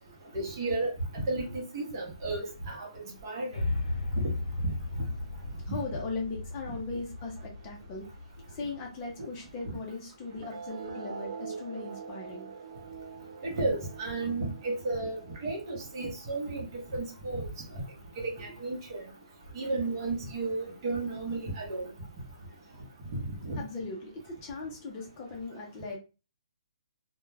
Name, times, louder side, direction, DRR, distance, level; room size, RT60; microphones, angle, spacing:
voice 1, 0.3-2.9 3.2-3.6 4.1-4.3 4.9-5.0 5.7-5.8 9.6-9.7 13.4-16.7 16.9-17.5 18.2-19.1 19.5-21.9 23.1-23.6, right 2 dB, 35° right, 0 dB, 0.9 m, -33 dB
sound 1, 3.5-9.7, left 2 dB, 85° left, 0.6 m, -36 dB
voice 2, 5.6-8.1 8.5-12.5 23.6-26.0, left 3 dB, 20° left, -1 dB, 0.6 m, -38 dB
sound 2, 10.4-17.4, right 5 dB, 65° right, 0.4 m, -44 dB
2.3 x 2.2 x 3.2 m, 0.31 s
hypercardioid pair, 165°, 3 cm